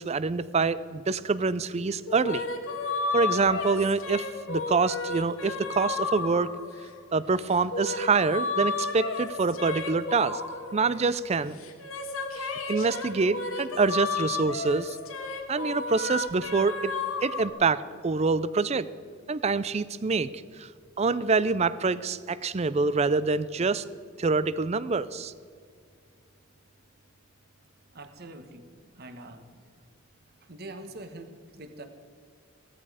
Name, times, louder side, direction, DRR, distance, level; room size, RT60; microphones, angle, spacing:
voice 1, 0.0-2.5 3.1-6.5 7.1-10.4 10.7-11.6 12.4-15.0 15.5-16.9 17.2-18.9 19.3-20.3 20.6-20.7 21.0-23.8 24.2-25.3, right 4 dB, 30° right, 17 dB, 0.4 m, -26 dB
sound 1, 2.1-7.0 7.5-11.2 11.6-17.5, left 3 dB, 70° left, 1.7 m, -33 dB
voice 2, 27.9-29.5 30.4-31.8, right 2 dB, 45° right, 8 dB, 1.3 m, -44 dB
17.0 x 14.0 x 4.9 m, 2.2 s
head